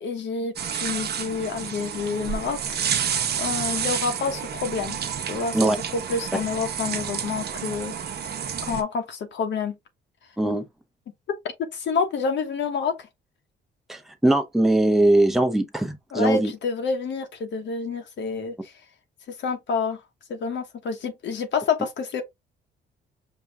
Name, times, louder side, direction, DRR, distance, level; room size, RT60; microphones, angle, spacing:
voice 1, 0.0-2.9 3.4-5.0 5.3-7.9 8.6-9.8 11.7-13.1 16.1-18.7 19.3-20.0 20.3-22.2, left 5 dB, 65° left, 1.0 m, -28 dB
sound 1, 0.6-8.8, right 8 dB, 55° right, 0.8 m, -30 dB
voice 2, 13.9-16.5, right 1 dB, ahead, 0.8 m, -21 dB
5.5 x 2.3 x 3.4 m
cardioid pair, 90°, 20 cm